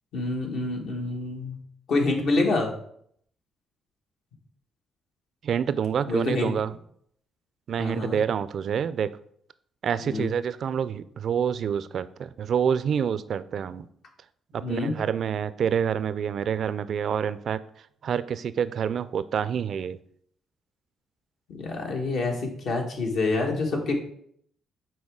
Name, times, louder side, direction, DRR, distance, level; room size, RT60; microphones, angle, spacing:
voice 1, 0.1-1.6 1.9-2.7 6.1-6.5 7.8-8.2 10.0-10.3 14.6-14.9 21.5-23.9, left 3 dB, 70° left, 1 dB, 1.5 m, -27 dB
voice 2, 5.4-6.7 7.7-9.1 9.8-13.9 14.5-20.0, right 8 dB, 60° right, 15 dB, 0.3 m, -27 dB
6.3 x 4.3 x 3.7 m, 0.67 s
cardioid pair, 90°, 0 cm